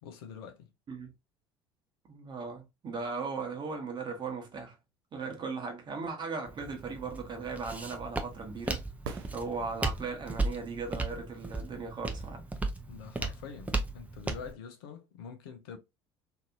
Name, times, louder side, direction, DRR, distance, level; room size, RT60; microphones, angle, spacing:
voice 1, 0.0-0.7 12.9-15.8, left 7 dB, 65° left, 0.6 m, -45 dB
voice 2, 2.0-4.8 5.1-8.8 9.3-12.4, right 4 dB, 35° right, 1.0 m, -38 dB
Walk footsteps, 6.5-14.5, right 2 dB, 10° right, 0.6 m, -36 dB
sound 1, 9.0-10.2 14.0-14.1, right 5 dB, 70° right, 0.5 m, -43 dB
2.8 x 2.5 x 2.4 m
figure-of-eight pair, 60°, 13 cm